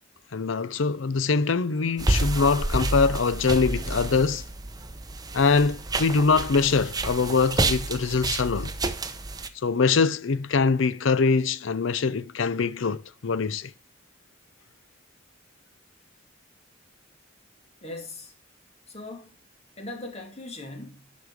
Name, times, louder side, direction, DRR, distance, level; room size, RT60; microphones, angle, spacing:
voice 1, 0.3-4.4 5.3-8.7 9.6-13.7, left 4 dB, 75° left, 0.6 m, -23 dB
sound 1, 2.0-9.5, right 2 dB, 20° right, 0.8 m, -29 dB
voice 2, 17.8-18.3 18.9-19.4 19.8-21.2, left 2 dB, 35° left, 2.5 m, -39 dB
11.5 x 5.3 x 4.8 m
head